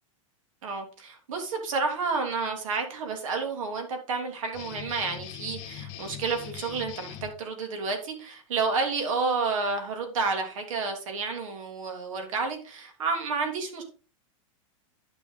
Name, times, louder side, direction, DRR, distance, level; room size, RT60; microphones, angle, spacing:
voice 1, 0.6-13.8, right 4 dB, 70° right, 4 dB, 3.2 m, -30 dB
sound 1, 4.5-7.3, left 10 dB, 50° left, 1.8 m, -41 dB
10.0 x 6.6 x 4.0 m, 0.36 s
supercardioid pair, 160°, 17 cm